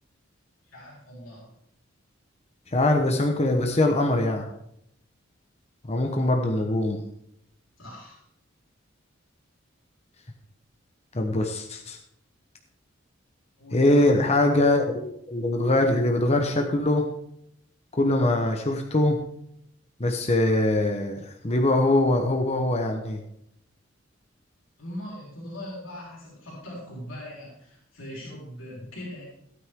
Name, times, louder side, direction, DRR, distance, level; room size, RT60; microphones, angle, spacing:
voice 1, 0.7-1.5 7.8-8.2 13.6-14.1 24.8-29.2, left 1 dB, 90° left, -4 dB, 4.3 m, -40 dB
voice 2, 2.7-4.5 5.9-7.0 11.1-12.0 13.7-17.1 17.9-19.3 20.0-23.2, left 1 dB, 35° left, 3 dB, 1.1 m, -23 dB
15.5 x 9.5 x 3.7 m, 0.75 s
head